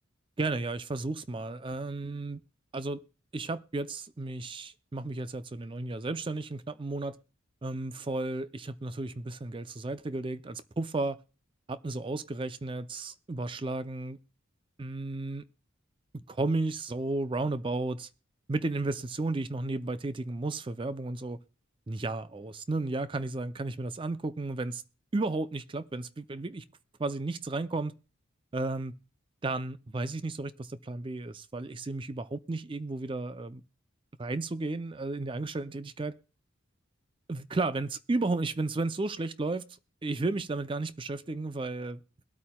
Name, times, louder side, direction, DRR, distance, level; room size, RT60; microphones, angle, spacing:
voice 1, 0.4-2.4 2.7-3.0 3.3-7.2 7.6-11.2 11.7-14.2 14.8-15.4 16.1-18.1 18.5-21.4 21.9-24.8 25.1-26.6 27.0-27.9 28.5-28.9 29.4-33.6 34.2-36.2 37.3-39.7 40.0-42.0, right 2 dB, 25° right, 0.4 m, -33 dB
22.0 x 8.5 x 2.3 m
head